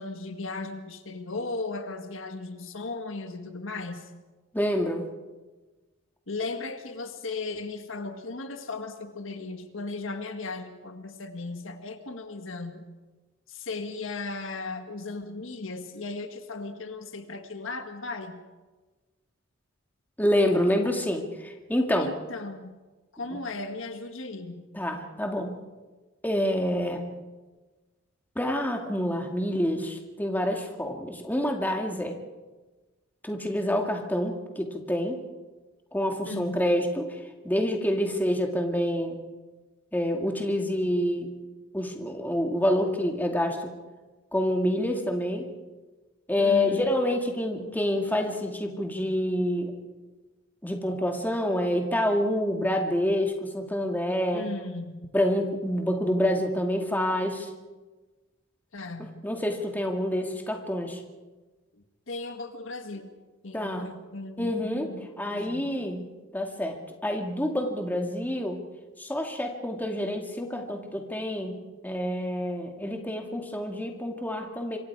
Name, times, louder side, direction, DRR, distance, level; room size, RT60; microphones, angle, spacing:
voice 1, 0.0-4.1 6.3-12.9 13.5-18.4 22.0-22.8 23.1-24.6 36.3-36.6 46.4-46.8 54.3-55.0 58.7-59.2 61.7-63.1 63.4-65.6, left 3 dB, 70° left, 6 dB, 1.8 m, -36 dB
voice 2, 4.5-5.0 20.2-22.1 23.3-23.4 24.7-25.6 26.2-27.0 28.4-32.2 33.2-35.2 35.9-37.2 37.4-39.2 39.9-41.3 41.7-43.7 44.3-45.5 46.3-49.7 50.6-54.5 55.1-57.5 59.0-61.0 63.5-63.9 64.4-64.9 65.2-66.1 66.3-68.6 69.0-74.8, left 1 dB, 10° left, 2 dB, 2.1 m, -27 dB
26.5 x 24.0 x 4.8 m, 1.2 s
head